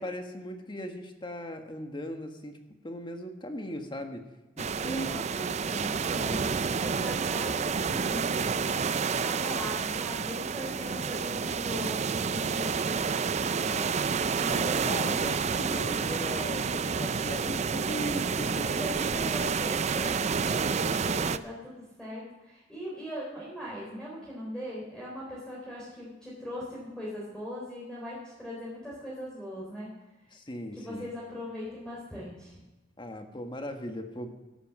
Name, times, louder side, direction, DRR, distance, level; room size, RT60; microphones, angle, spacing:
voice 1, 0.0-2.6 2.8-4.3 4.6-5.2 13.6-13.9 14.4-18.7 18.9-19.0 19.3-19.5 30.3-31.1 33.0-34.3, equal, 25° left, 5 dB, 1.5 m, -38 dB
sound 1, 4.6-21.4, right 5 dB, 40° right, 0.5 m, -29 dB
voice 2, 4.8-13.2 18.2-29.9 30.7-32.6, equal, 5° left, -6 dB, 4.0 m, -40 dB
13.0 x 11.0 x 7.5 m, 1.1 s
head